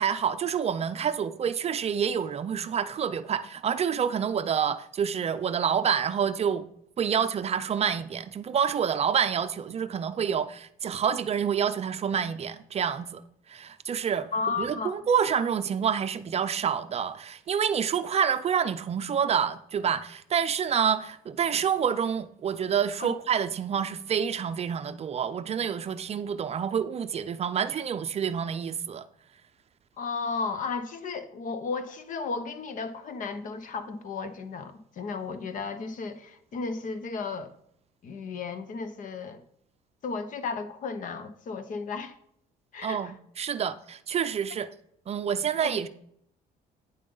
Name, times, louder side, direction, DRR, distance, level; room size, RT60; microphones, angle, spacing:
voice 1, 0.0-6.6 7.0-13.2 13.5-14.3 14.6-29.1 42.8-44.7 45.1-45.9, right 7 dB, 40° right, 0.5 m, -28 dB
voice 2, 14.3-15.0 23.0-23.1 30.0-37.5 38.0-39.4 40.0-42.1 42.7-43.1 45.5-45.8, left 4 dB, 50° left, 1.0 m, -34 dB
9.2 x 7.5 x 3.9 m
cardioid pair, 110°, 17 cm